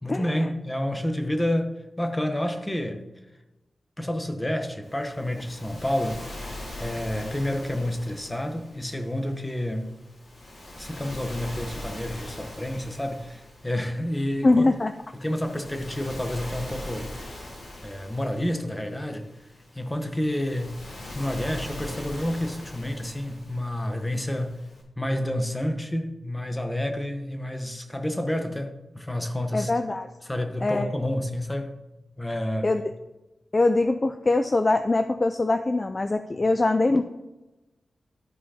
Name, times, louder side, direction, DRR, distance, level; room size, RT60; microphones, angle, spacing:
voice 1, 0.0-3.0 4.0-6.3 6.8-10.0 10.7-14.6 15.1-17.1 17.8-19.3 19.7-20.8 21.1-24.6 25.0-29.7 30.2-31.8 32.2-32.7, left 1 dB, 10° left, 6 dB, 1.0 m, -29 dB
Waves surf, 4.8-24.8, left 1 dB, 70° left, 2.9 m, -41 dB
voice 2, 14.4-14.9 29.5-30.1 30.6-30.9 32.6-32.8 33.5-37.0, left 2 dB, 30° left, 8 dB, 0.4 m, -22 dB
12.5 x 5.1 x 4.2 m, 1.0 s
wide cardioid pair, 110°, 0 cm